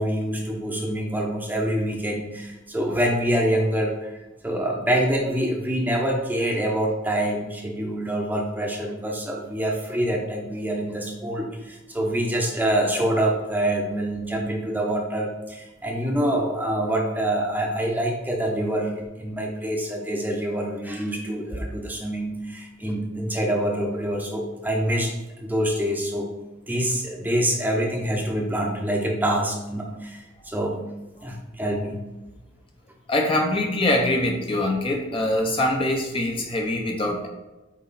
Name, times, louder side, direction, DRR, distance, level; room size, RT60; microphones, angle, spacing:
voice 1, 0.0-4.1 4.4-26.3 26.7-30.8 31.2-32.0, right 1 dB, 10° right, 0 dB, 0.8 m, -26 dB
voice 2, 33.1-37.3, left 1 dB, 25° left, 2 dB, 0.6 m, -23 dB
8.2 x 3.1 x 4.1 m, 1.1 s
head